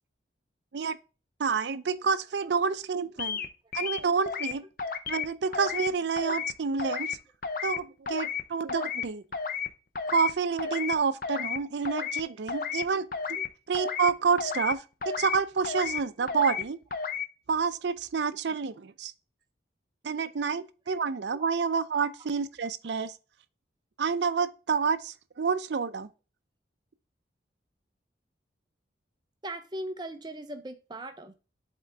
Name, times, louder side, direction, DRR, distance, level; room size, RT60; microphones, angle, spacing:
voice 1, 1.4-3.4 3.7-4.6 5.1-7.2 7.6-9.2 10.1-13.4 13.7-16.8 17.5-19.1 20.0-23.1 24.0-26.1, right 5 dB, 70° right, 0.5 m, -28 dB
sound 1, 3.2-3.5 3.7-4.5 4.8-5.3 5.5-5.9 6.2-6.5 6.8-7.2 7.4-7.8 8.1-8.4 8.7-9.0 9.3-9.7 10.0-10.3 10.6-10.9 11.2-11.6 11.9-12.2 12.5-12.8 13.1-13.5 13.7-14.1 14.4-14.7 15.0-15.4 15.6-16.0 16.3-16.6 16.9-17.3, left 6 dB, 50° left, 0.7 m, -32 dB
voice 2, 29.4-31.3, right 1 dB, 25° right, 0.6 m, -39 dB
7.8 x 3.7 x 3.4 m
head